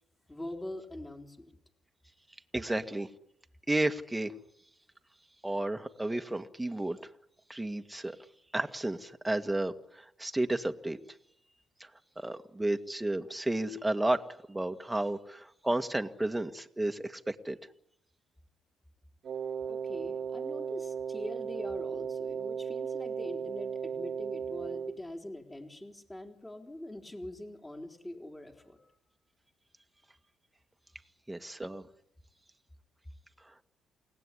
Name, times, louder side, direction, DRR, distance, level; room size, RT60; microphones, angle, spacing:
voice 1, 0.3-1.5 19.6-28.9, left 1 dB, 15° left, 4 dB, 4.0 m, -43 dB
voice 2, 2.5-3.1 3.7-4.3 5.4-7.0 7.5-8.2 8.5-11.0 12.2-14.2 14.5-17.6 31.3-31.8, right 1 dB, 10° right, 7 dB, 1.8 m, -32 dB
Wind instrument woodwind instrument, 19.2-25.0, right 7 dB, 60° right, 1.7 m, -36 dB
29.0 x 18.0 x 10.0 m, 0.79 s
cardioid pair, 90°, 0 cm